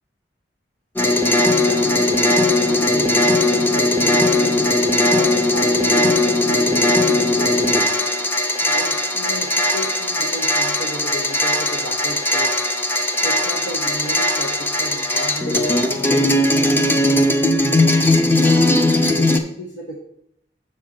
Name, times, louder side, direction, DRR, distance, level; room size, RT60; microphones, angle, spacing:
sound 1, 1.0-19.4, left 1 dB, 10° left, 0.5 m, -18 dB
voice 1, 1.5-4.8 5.1-8.0 8.6-12.6 13.2-18.0 18.4-20.0, right 1 dB, 90° left, 0 dB, 1.2 m, -33 dB
6.4 x 4.3 x 6.6 m, 0.73 s
head